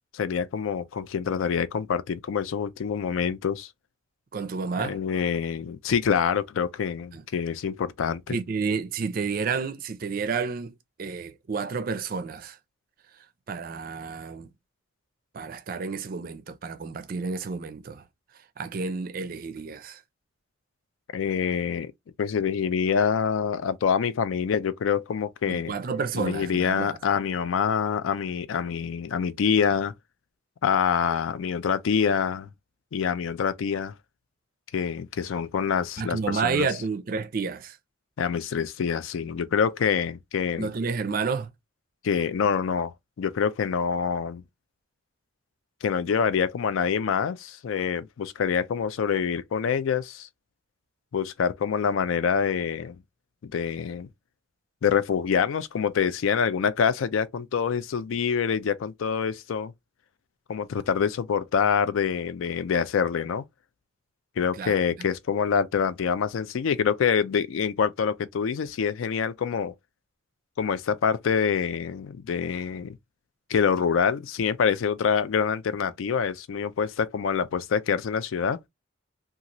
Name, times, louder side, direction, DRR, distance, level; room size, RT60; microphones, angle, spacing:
voice 1, 0.1-3.7 4.8-8.4 21.1-21.9 22.2-25.7 26.1-29.9 30.6-32.5 32.9-33.9 34.7-36.7 38.2-40.7 42.0-44.4 45.8-50.3 51.1-53.0 53.4-54.1 54.8-59.7 60.5-63.4 64.4-69.7 70.6-73.0 73.5-78.6, left 7 dB, 80° left, 0.4 m, -26 dB
voice 2, 4.3-5.0 7.1-7.2 8.3-12.6 13.5-14.5 15.3-18.0 18.6-20.0 25.5-27.0 36.0-37.8 40.6-41.5 64.5-65.1, right 5 dB, 45° right, 0.4 m, -30 dB
2.9 x 2.4 x 2.5 m
head